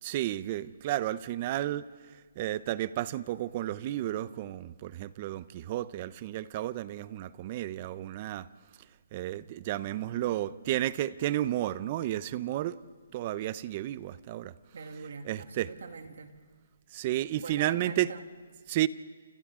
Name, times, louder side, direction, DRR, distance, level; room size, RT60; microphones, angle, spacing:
voice 1, 0.0-1.9 2.4-8.5 9.1-12.8 13.1-14.5 15.2-15.7 16.9-18.1 18.7-18.9, right 14 dB, 30° right, 17 dB, 0.6 m, -32 dB
voice 2, 14.7-16.3 17.4-18.2, right 4 dB, 65° right, 5 dB, 2.4 m, -43 dB
30.0 x 29.0 x 3.7 m, 1.5 s
hypercardioid pair, 165°, 0 cm